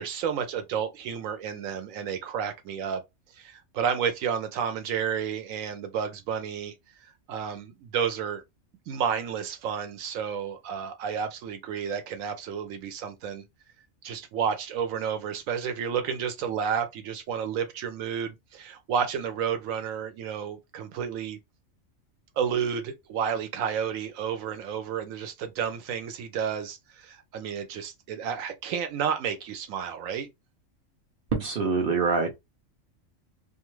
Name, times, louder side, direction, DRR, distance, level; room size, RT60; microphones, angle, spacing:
voice 1, 0.0-3.0 3.3-6.7 7.3-8.4 8.9-13.4 14.0-21.4 22.4-30.3, right 7 dB, 80° right, 1.0 m, -31 dB
voice 2, 31.3-32.3, right 4 dB, 55° right, 0.7 m, -25 dB
2.5 x 2.4 x 3.0 m
omnidirectional pair, 1.4 m